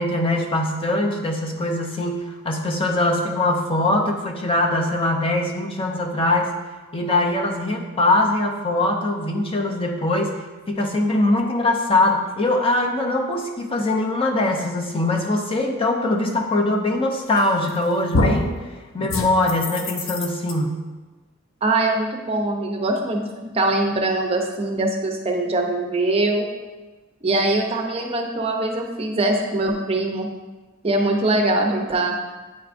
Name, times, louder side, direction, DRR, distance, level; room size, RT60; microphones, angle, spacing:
voice 1, 0.0-6.5 6.9-10.3 10.7-18.5 18.9-20.8, left 2 dB, 30° left, 1 dB, 0.6 m, -22 dB
sound 1, 17.4-17.8 18.1-18.5 19.1-20.5, left 2 dB, 80° left, 0.6 m, -24 dB
voice 2, 21.6-23.3 23.5-26.5 27.2-30.3 30.8-32.2, right 2 dB, 30° right, 2 dB, 0.6 m, -22 dB
8.4 x 4.6 x 2.5 m, 1.2 s
head